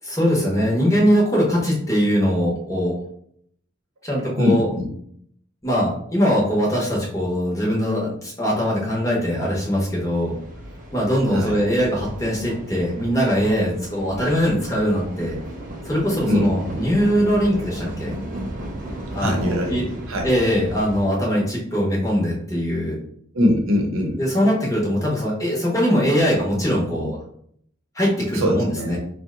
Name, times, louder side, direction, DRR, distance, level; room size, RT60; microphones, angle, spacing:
voice 1, 0.0-2.9 4.0-4.7 5.6-10.4 10.9-15.4 15.8-18.2 19.1-19.8 20.2-23.0 24.2-27.2 27.9-29.0, equal, 15° left, -4 dB, 0.7 m, -21 dB
voice 2, 4.4-4.9 11.3-11.6 16.2-16.8 19.2-20.3 23.3-24.2 28.3-29.0, equal, 90° right, 2 dB, 0.7 m, -22 dB
sound 1, 9.6-21.1, right 1 dB, 40° right, 0.5 m, -35 dB
2.6 x 2.1 x 3.6 m, 0.66 s
head